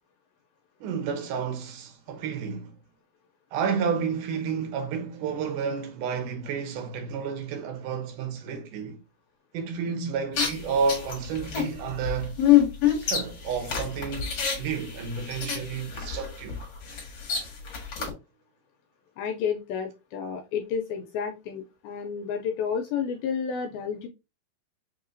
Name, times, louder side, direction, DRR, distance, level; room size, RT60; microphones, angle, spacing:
voice 1, 0.8-2.7 3.5-9.0 9.5-12.4 13.0-14.3 14.6-16.6 18.0-18.1, right 6 dB, 75° right, 2.1 m, -31 dB
sound 1, 10.3-18.1, left 10 dB, 50° left, 2.2 m, -26 dB
voice 2, 19.2-24.1, left 7 dB, 80° left, 2.3 m, -31 dB
5.9 x 2.9 x 2.6 m
omnidirectional pair, 4.4 m